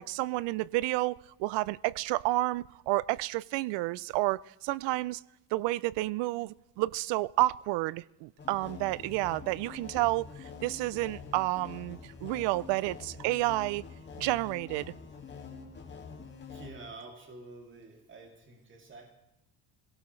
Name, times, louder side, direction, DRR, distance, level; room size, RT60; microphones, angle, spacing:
voice 1, 0.0-5.2 5.5-13.8 14.2-14.9, right 19 dB, 90° right, 0.6 m, -30 dB
sound 1, 8.4-16.7, left 5 dB, 25° left, 2.1 m, -46 dB
voice 2, 16.5-19.1, right 3 dB, 30° right, 2.6 m, -48 dB
25.0 x 17.5 x 3.2 m
cardioid pair, 145°, 41 cm